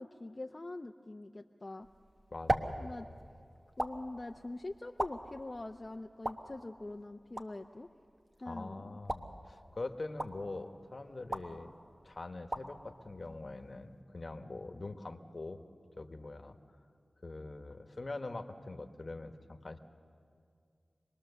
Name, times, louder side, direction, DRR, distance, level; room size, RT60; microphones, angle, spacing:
voice 1, 0.0-1.9 2.8-3.1 3.8-7.9 8.4-9.0, left 2 dB, 40° left, 4 dB, 0.6 m, -44 dB
sound 1, 1.8-14.0, right 1 dB, 40° right, 1.2 m, -42 dB
voice 2, 2.3-2.8 8.5-11.7 12.0-15.6 16.0-16.6 17.2-19.8, left 2 dB, 55° left, 8 dB, 1.2 m, -43 dB
26.5 x 20.0 x 6.8 m, 2.3 s
cardioid pair, 40°, 0 cm